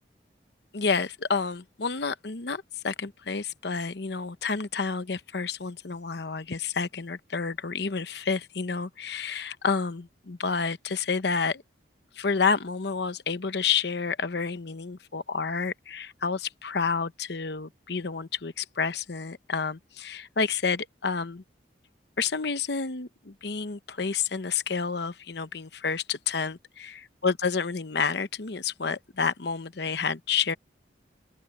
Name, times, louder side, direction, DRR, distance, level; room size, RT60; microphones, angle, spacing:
voice 1, 0.7-11.6 12.2-21.4 22.2-27.0 27.2-30.5, left 5 dB, 60° left, 0.9 m, -29 dB
open air
head